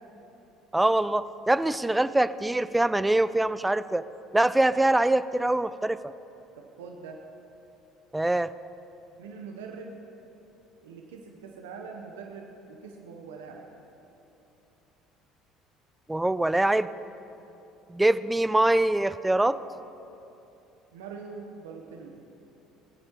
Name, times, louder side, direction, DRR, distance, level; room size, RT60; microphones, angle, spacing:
voice 1, 0.7-4.0 4.3-6.0 8.1-8.5 16.1-16.9 17.9-19.6, right 1 dB, 10° right, 15 dB, 0.3 m, -23 dB
voice 2, 6.5-7.2 9.2-10.0 10.8-13.6 20.9-22.2, right 5 dB, 85° right, 1 dB, 0.8 m, -43 dB
19.0 x 8.7 x 3.0 m, 3.0 s
hypercardioid pair, 65°, 0 cm